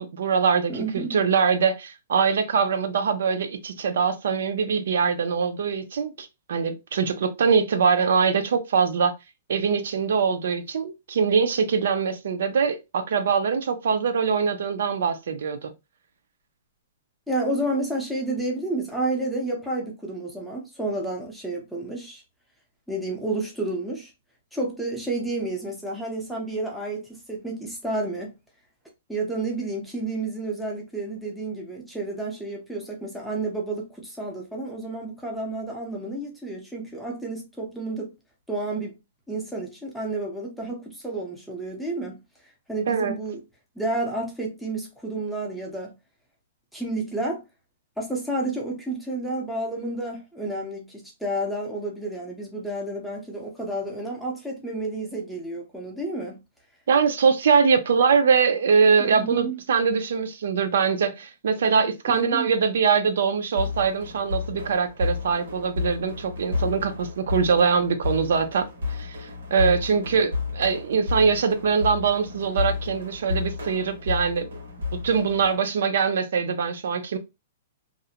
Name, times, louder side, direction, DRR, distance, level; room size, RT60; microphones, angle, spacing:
voice 1, 0.0-9.1 9.5-15.7 42.9-43.1 56.9-74.5 74.9-77.2, right 6 dB, 65° right, 0.4 m, -23 dB
voice 2, 0.7-1.2 17.3-22.2 22.9-24.1 24.5-28.3 29.1-38.1 38.5-39.0 39.3-43.4 43.8-45.9 46.7-47.4 48.0-56.4 59.0-59.6 62.1-62.5, right 2 dB, ahead, 0.5 m, -30 dB
sound 1, 63.6-75.5, left 4 dB, 85° right, 0.9 m, -31 dB
2.4 x 2.0 x 2.7 m
hypercardioid pair, 175°, 0 cm